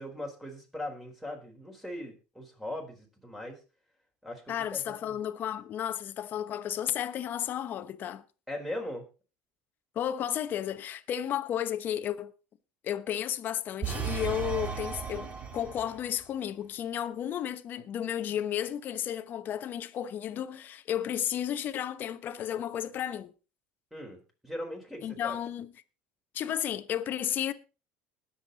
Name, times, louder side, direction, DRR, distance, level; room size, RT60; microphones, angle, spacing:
voice 1, 0.0-3.6 4.2-5.2 8.5-9.0 23.9-25.4, left 1 dB, 5° right, 4.2 m, -40 dB
voice 2, 4.5-8.2 9.9-12.3 12.8-23.3 25.0-25.7 26.3-27.5, left 10 dB, 40° left, 1.0 m, -33 dB
sound 1, 13.8-16.1, right 7 dB, 30° right, 1.9 m, -35 dB
20.5 x 7.4 x 4.1 m
cardioid pair, 135°, 5 cm